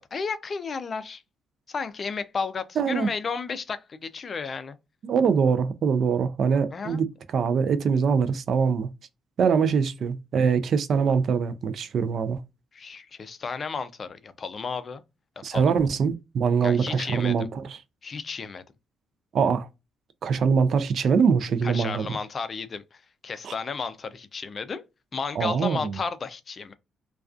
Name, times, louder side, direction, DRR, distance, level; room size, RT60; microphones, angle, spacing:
voice 1, 0.1-1.2 1.7-4.8 6.7-7.0 12.7-15.0 15.4-15.7 16.6-17.5 18.0-18.6 21.6-24.8 25.1-26.7, left 5 dB, 40° left, 0.4 m, -33 dB
voice 2, 2.8-3.1 5.0-7.1 7.3-8.9 9.4-12.4 15.4-17.8 19.3-19.7 20.2-22.1 23.4-23.5 25.4-26.0, right 6 dB, 60° right, 0.3 m, -23 dB
2.4 x 2.3 x 2.3 m
cardioid pair, 90°, 0 cm